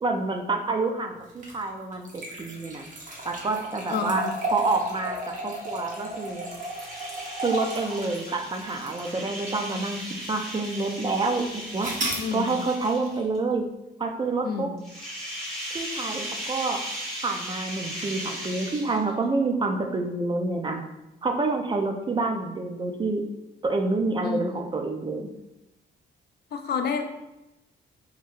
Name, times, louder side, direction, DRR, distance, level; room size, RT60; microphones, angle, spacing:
voice 1, 0.0-2.9 3.2-4.2 4.5-6.4 7.4-10.0 10.3-11.4 11.7-11.9 12.3-13.6 14.0-14.7 15.7-16.8 17.2-20.8 21.2-23.2 23.6-25.3, right 3 dB, 25° right, 3 dB, 0.3 m, -28 dB
sound 1, 1.3-9.7 10.2-10.3 11.8-12.3, right 1 dB, 40° right, 0.8 m, -34 dB
voice 2, 3.9-4.3 12.2-12.6 14.4-14.8 24.2-24.4 26.5-27.0, left 6 dB, 55° left, 6 dB, 0.4 m, -29 dB
sound 2, 5.6-13.4 14.8-19.2, equal, ahead, 1.4 m, -37 dB
2.7 x 2.6 x 2.4 m, 0.95 s
cardioid pair, 90°, 20 cm